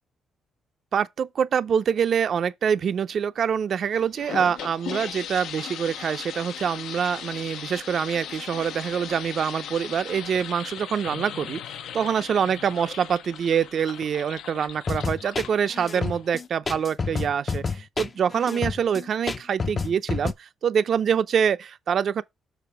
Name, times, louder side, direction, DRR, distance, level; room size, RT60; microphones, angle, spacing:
voice 1, 0.9-11.6 11.9-22.2, right 7 dB, 50° right, 0.5 m, -25 dB
sound 1, 3.9-16.5, left 9 dB, 80° left, 0.7 m, -38 dB
sound 2, 14.9-20.3, left 4 dB, 25° left, 0.5 m, -29 dB
7.0 x 4.2 x 4.6 m
cardioid pair, 130°, 0 cm